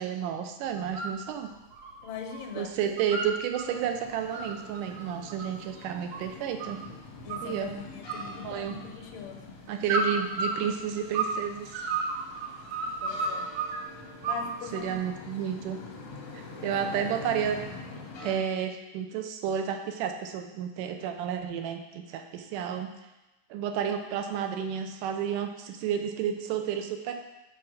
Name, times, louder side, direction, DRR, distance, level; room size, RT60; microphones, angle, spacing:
voice 1, 0.0-1.5 2.6-6.8 7.4-7.7 8.4-8.7 9.7-11.8 14.7-15.8 16.3-17.6 18.2-22.9 23.5-27.1, right 8 dB, 80° right, 5 dB, 2.2 m, -31 dB
sound 1, 0.8-1.2 1.5-2.5 2.7-3.7 4.1-6.9 7.3-7.8 8.1-9.0 9.9-11.4 11.7-13.8 14.2-15.0, right 3 dB, 65° right, 1.7 m, -32 dB
voice 2, 2.0-2.9 7.2-9.5 13.0-13.5 14.3-15.0 16.6-16.8 18.2-18.4, left 7 dB, 85° left, 5 dB, 2.4 m, -41 dB
sound 2, 3.7-18.4, left 3 dB, 65° left, 1.4 m, -45 dB
5.8 x 4.6 x 6.3 m, 1.0 s
omnidirectional pair, 3.7 m